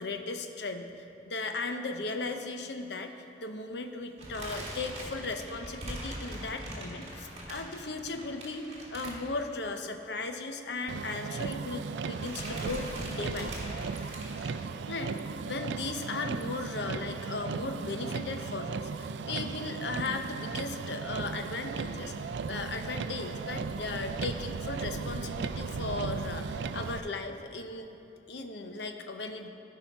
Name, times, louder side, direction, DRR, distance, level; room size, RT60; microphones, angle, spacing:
voice 1, 0.0-13.6 14.9-27.9 28.3-29.5, left 3 dB, 70° left, 6 dB, 0.7 m, -37 dB
sound 1, 4.2-9.8 10.0-10.2 10.5-10.6 11.5-11.8 12.1-14.5, right 1 dB, 40° right, 2.0 m, -41 dB
Motor vehicle (road), 10.9-27.0, right 5 dB, 80° right, 0.4 m, -36 dB
14.5 x 5.6 x 4.6 m, 2.9 s
head